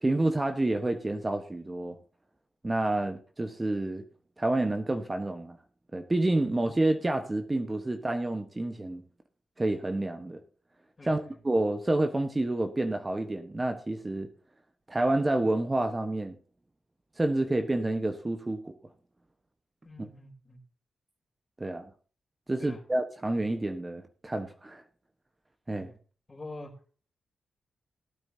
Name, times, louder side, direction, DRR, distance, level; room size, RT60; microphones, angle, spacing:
voice 1, 0.0-2.0 2.6-4.0 4.4-5.6 5.9-9.0 9.6-10.4 11.0-14.3 14.9-16.4 17.2-18.7 20.0-20.1 21.6-21.9 22.5-24.8 25.7-25.9, right 2 dB, 25° right, 6 dB, 1.2 m, -29 dB
voice 2, 19.8-20.6 22.6-22.8 25.7-26.0 26.3-26.7, left 2 dB, 35° left, 1 dB, 3.6 m, -45 dB
17.5 x 9.0 x 2.8 m, 0.38 s
supercardioid pair, 50°, 0 cm